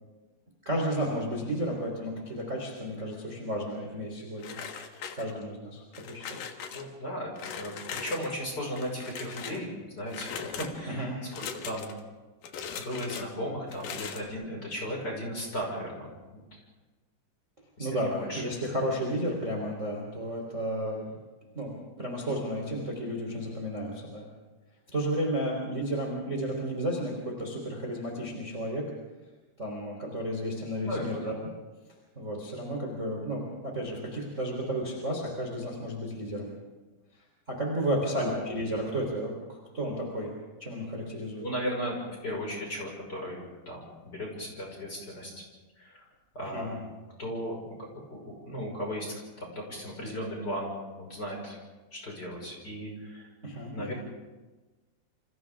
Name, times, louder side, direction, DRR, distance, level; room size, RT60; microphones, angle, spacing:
voice 1, 0.7-4.6 5.1-5.8 6.1-6.5 10.9-11.2 17.8-21.2 21.5-24.2 24.9-28.8 29.6-31.3 32.2-36.5 37.5-40.3 40.6-41.5 46.4-46.7 53.4-53.9, equal, 15° right, -1 dB, 3.6 m, -32 dB
sound 1, 4.4-5.5 5.9-6.8 7.4-8.3 8.7-9.6 10.1-10.7 11.3-12.0 12.4-13.3 13.7-14.3, left 7 dB, 60° left, 2.3 m, -40 dB
voice 2, 6.7-9.7 9.9-11.9 12.8-16.4 17.8-18.4 30.8-31.3 38.2-38.4 41.4-45.4 45.8-46.0 46.3-46.8 47.2-50.7 51.0-51.6 51.9-53.3 53.7-53.9, equal, 20° left, -1 dB, 6.0 m, -36 dB
29.5 x 26.5 x 3.7 m, 1.2 s
omnidirectional pair, 5.3 m